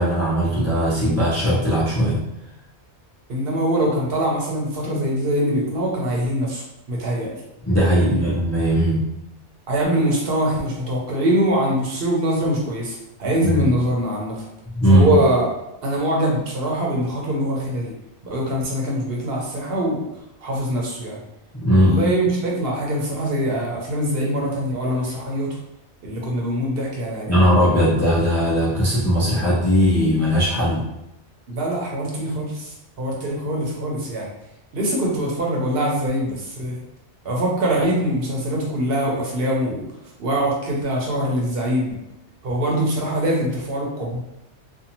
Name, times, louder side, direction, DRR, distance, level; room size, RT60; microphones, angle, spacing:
voice 1, 0.0-2.2 7.6-9.0 13.4-13.7 14.8-15.2 21.6-22.0 27.3-30.8, equal, 25° left, -7 dB, 0.4 m, -18 dB
voice 2, 3.3-7.4 7.9-8.3 9.7-14.5 14.9-15.5 15.8-17.9 18.2-20.1 20.4-21.2 21.8-25.6 26.0-27.4 31.5-34.3 34.7-36.8 37.2-39.9 40.2-42.0 42.4-44.2, right 1 dB, 60° right, -2 dB, 0.8 m, -23 dB
2.6 x 2.3 x 2.8 m, 0.84 s
omnidirectional pair, 1.2 m